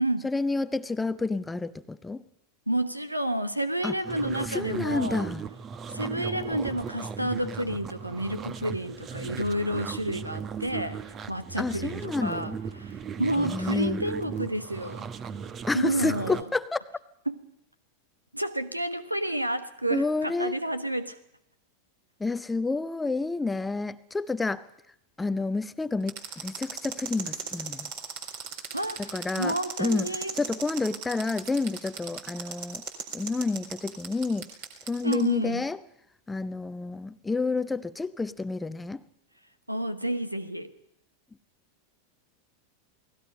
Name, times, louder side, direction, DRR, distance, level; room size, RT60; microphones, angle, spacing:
voice 1, 0.2-2.2 3.8-3.9 4.5-5.4 11.6-12.6 13.4-14.0 15.7-16.8 19.9-20.6 22.2-24.6 25.2-27.9 29.0-30.1 30.3-32.8 33.1-34.5 34.9-35.8 36.3-39.0, left 3 dB, 10° left, 14 dB, 0.7 m, -29 dB
voice 2, 2.7-5.3 5.9-11.0 11.3-15.0 15.7-16.4 17.3-17.4 18.3-21.2 28.7-30.3 35.0-35.7 39.7-40.7, right 1 dB, 85° right, 13 dB, 1.2 m, -30 dB
sound 1, 4.0-16.4, right 6 dB, 25° right, 1.1 m, -37 dB
sound 2, 26.1-35.1, right 7 dB, 50° right, 4.2 m, -36 dB
28.5 x 19.0 x 5.5 m, 0.79 s
figure-of-eight pair, 90°, 0 cm